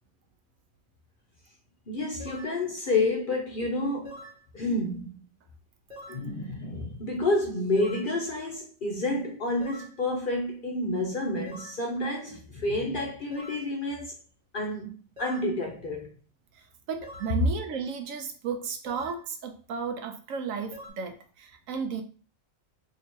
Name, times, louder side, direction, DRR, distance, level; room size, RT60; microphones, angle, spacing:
voice 1, 1.9-4.2 4.5-5.2 6.1-14.1 14.5-16.1, left 2 dB, 50° left, 0.6 m, -29 dB
sound 1, 2.2-2.6 4.0-4.4 5.9-6.3 7.7-8.1 9.6-10.0 11.5-11.8 13.3-13.7 15.2-15.5 17.0-17.4 18.9-19.2 20.7-20.9, equal, 35° right, 1.3 m, -45 dB
voice 2, 16.9-22.0, right 6 dB, 75° right, 1.0 m, -34 dB
2.9 x 2.8 x 4.4 m
omnidirectional pair, 1.4 m